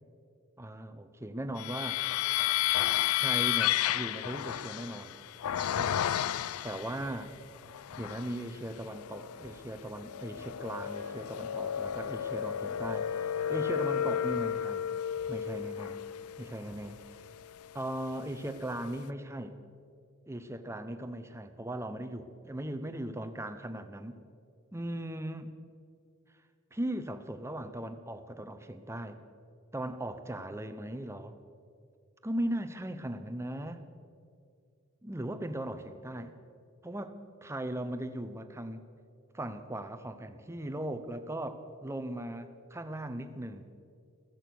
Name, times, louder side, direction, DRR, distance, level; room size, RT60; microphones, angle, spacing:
voice 1, 0.6-2.1 3.2-5.2 5.8-6.1 6.6-7.3 8.0-14.9 15.3-16.0 16.4-17.0 17.7-19.6 20.3-24.2 24.7-25.5 26.7-29.2 29.7-31.4 32.2-33.8 35.0-36.4 36.8-38.9 39.3-43.7, right 1 dB, 10° right, 9 dB, 0.7 m, -38 dB
sound 1, 1.6-7.0 7.6-8.4 8.9-18.1, left 11 dB, 85° left, 0.4 m, -32 dB
sound 2, 5.3-16.9, right 1 dB, 30° left, 2.5 m, -59 dB
15.0 x 14.5 x 6.2 m, 2.3 s
head